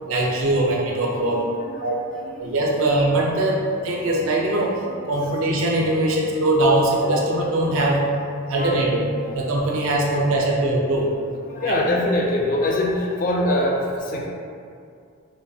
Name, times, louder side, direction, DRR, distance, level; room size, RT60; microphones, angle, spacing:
voice 1, 0.1-1.4 1.8-2.0 2.4-4.7 5.1-8.0 8.5-9.0 9.3-11.1 11.7-11.8, right 1 dB, 75° right, -2 dB, 0.5 m, -21 dB
voice 2, 0.9-2.4 2.7-2.9 3.9-4.3 4.8-5.0 5.7-6.3 7.2-7.3 7.6-7.8 8.5-8.8 9.2-9.3 11.4-14.3, left 1 dB, 40° left, -1 dB, 0.3 m, -26 dB
3.1 x 2.3 x 2.6 m, 2.3 s
head